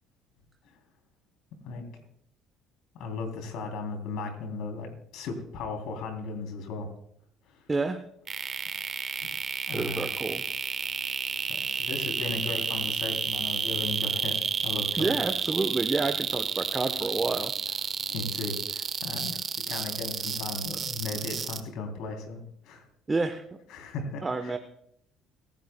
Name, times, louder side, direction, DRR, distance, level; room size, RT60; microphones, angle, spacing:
voice 1, 2.9-6.9 7.5-7.7 9.2-9.4 9.7-10.1 11.5-14.3 14.6-15.1 18.1-22.9 23.7-24.5, left 3 dB, 70° left, 4 dB, 3.1 m, -36 dB
voice 2, 7.7-8.0 9.7-10.4 15.0-17.5 23.1-23.4 24.2-24.6, right 3 dB, 20° right, 7 dB, 1.0 m, -29 dB
sound 1, 8.3-21.6, right 6 dB, 45° right, 1.1 m, -30 dB
29.5 x 10.5 x 2.2 m, 0.71 s
supercardioid pair, 75°, 0 cm